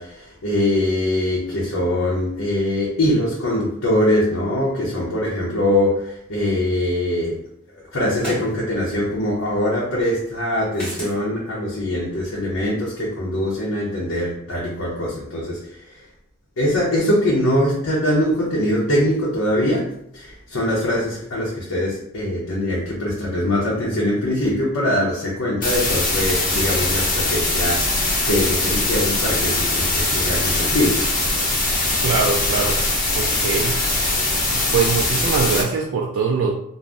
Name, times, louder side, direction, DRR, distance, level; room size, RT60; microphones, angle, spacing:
voice 1, 0.0-7.4 7.7-16.1 16.6-27.9 28.2-31.0, left 1 dB, 75° left, -5 dB, 0.7 m, -22 dB
sound 1, 6.8-6.9 8.2-8.5 10.7-11.2, equal, 5° left, 0.9 m, -30 dB
sound 2, 25.6-35.6, left 2 dB, 40° left, 0.7 m, -21 dB
voice 2, 32.0-32.8 33.2-33.8 34.5-36.5, right 5 dB, 65° right, -1 dB, 0.3 m, -22 dB
2.5 x 2.0 x 3.4 m, 0.73 s
head